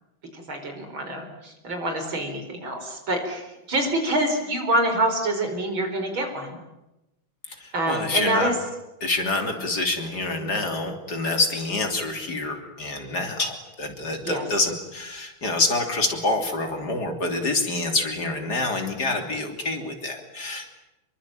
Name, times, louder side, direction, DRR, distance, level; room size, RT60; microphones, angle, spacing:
voice 1, 0.3-6.6 7.7-8.5 14.2-14.4, right 1 dB, 70° right, 5 dB, 5.6 m, -26 dB
voice 2, 7.6-8.5 9.0-20.7, left 2 dB, 50° left, 5 dB, 3.7 m, -27 dB
26.5 x 23.0 x 9.0 m, 0.97 s
omnidirectional pair, 2.3 m